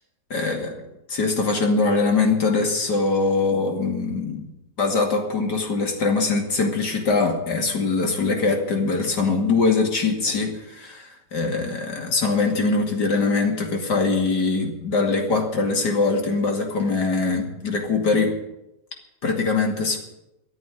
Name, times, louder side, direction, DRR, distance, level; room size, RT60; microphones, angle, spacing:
voice 1, 0.3-0.7 1.1-4.5 4.8-18.4 19.2-20.0, left 3 dB, 60° left, 3 dB, 2.9 m, -22 dB
13.5 x 8.6 x 9.6 m, 0.90 s
omnidirectional pair, 2.1 m